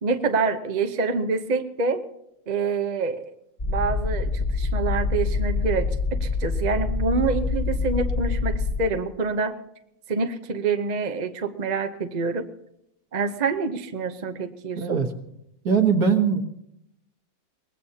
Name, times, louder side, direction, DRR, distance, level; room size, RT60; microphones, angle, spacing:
voice 1, 0.0-2.0 2.5-3.3 3.6-9.5 10.1-12.5 13.1-15.0, right 4 dB, 40° right, 6 dB, 0.6 m, -26 dB
sound 1, 3.6-8.9, left 3 dB, 30° left, 1.7 m, -26 dB
voice 2, 14.8-15.1 15.6-16.4, right 6 dB, 55° right, 5 dB, 1.8 m, -20 dB
23.0 x 20.0 x 2.8 m, 0.79 s
omnidirectional pair, 2.0 m